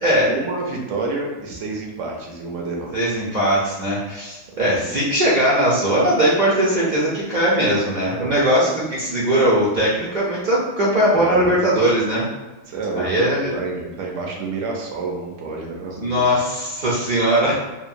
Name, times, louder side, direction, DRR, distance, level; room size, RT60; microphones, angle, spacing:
voice 1, 0.2-2.9 4.5-5.0 8.2-8.5 11.2-11.6 12.7-13.0 13.5-16.2, right 3 dB, 70° right, 0 dB, 0.9 m, -29 dB
voice 2, 2.9-12.3 13.0-13.4 16.0-17.6, right 1 dB, 55° right, -6 dB, 0.5 m, -19 dB
2.9 x 2.2 x 2.5 m, 1.1 s
omnidirectional pair, 1.4 m